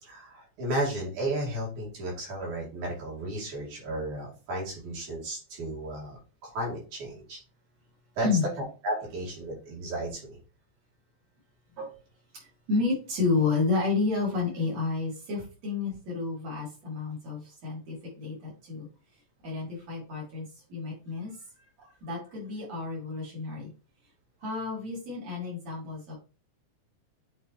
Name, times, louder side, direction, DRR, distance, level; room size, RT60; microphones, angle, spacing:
voice 1, 0.0-6.2 6.5-7.4 8.2-8.3 8.8-10.4, right 1 dB, 85° right, -4 dB, 3.9 m, -33 dB
voice 2, 12.7-18.9 19.4-21.3 21.8-23.7 24.4-26.1, left 4 dB, 60° right, -4 dB, 4.1 m, -30 dB
8.1 x 3.7 x 3.2 m, 0.34 s
omnidirectional pair, 3.3 m